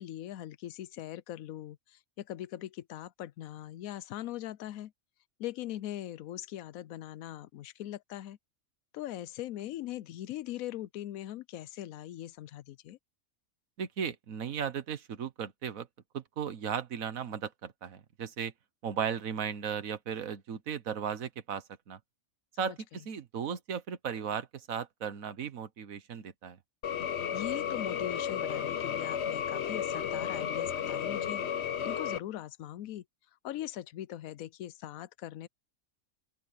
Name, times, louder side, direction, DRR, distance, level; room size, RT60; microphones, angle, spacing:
voice 1, 0.0-4.9 5.4-8.4 8.9-13.0 22.5-23.1 27.3-33.0 33.4-35.5, left 13 dB, 85° left, 1.0 m, -41 dB
voice 2, 13.8-15.9 16.1-18.5 18.8-22.0 22.6-26.6, right 7 dB, 80° right, 1.6 m, -36 dB
sound 1, 26.8-32.2, left 8 dB, 55° left, 1.0 m, -33 dB
open air
omnidirectional pair, 1.4 m